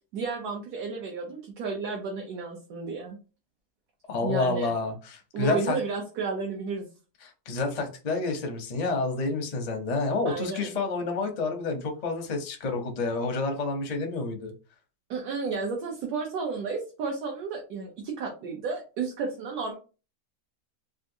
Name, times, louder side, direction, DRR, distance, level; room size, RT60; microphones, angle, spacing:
voice 1, 0.1-3.2 4.2-4.7 5.3-6.9 10.3-10.7 15.1-19.7, right 4 dB, 80° right, 0 dB, 1.2 m, -32 dB
voice 2, 4.1-5.8 7.2-14.5, left 3 dB, 50° left, 4 dB, 0.5 m, -29 dB
3.6 x 2.5 x 2.6 m, 0.33 s
omnidirectional pair, 1.7 m